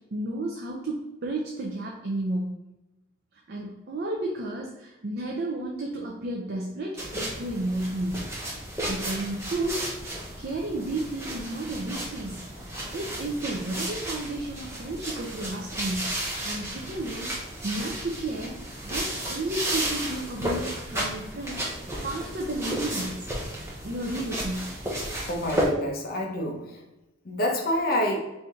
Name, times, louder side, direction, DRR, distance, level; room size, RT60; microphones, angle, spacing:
voice 1, 0.1-2.6 3.5-8.2 8.9-9.8 10.4-12.5 12.9-16.1 16.4-23.3 23.8-24.7, right 2 dB, 50° right, -1 dB, 0.5 m, -32 dB
sound 1, 7.0-25.7, right 1 dB, 15° right, 0.8 m, -33 dB
voice 2, 25.3-26.8 27.2-28.2, left 1 dB, 45° left, 0 dB, 0.7 m, -27 dB
4.4 x 2.7 x 3.5 m, 1.0 s
head